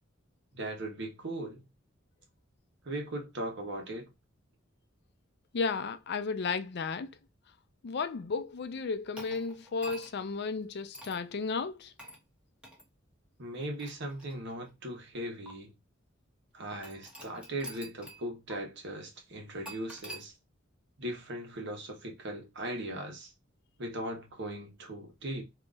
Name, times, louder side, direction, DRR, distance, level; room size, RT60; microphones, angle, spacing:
voice 1, 0.5-1.6 2.8-4.1 13.4-15.7 16.5-20.3 21.0-23.3 23.8-25.4, right 1 dB, 60° right, 1.2 m, -38 dB
voice 2, 5.5-7.1 7.8-11.9, left 4 dB, 55° left, 0.5 m, -33 dB
sound 1, 9.2-10.3 10.9-11.3 12.0-12.2 12.6-12.8 13.6-14.7 15.5-15.6 16.8-18.2 18.5-18.6 19.7-20.3, right 1 dB, 5° right, 1.1 m, -47 dB
3.9 x 2.8 x 2.4 m
head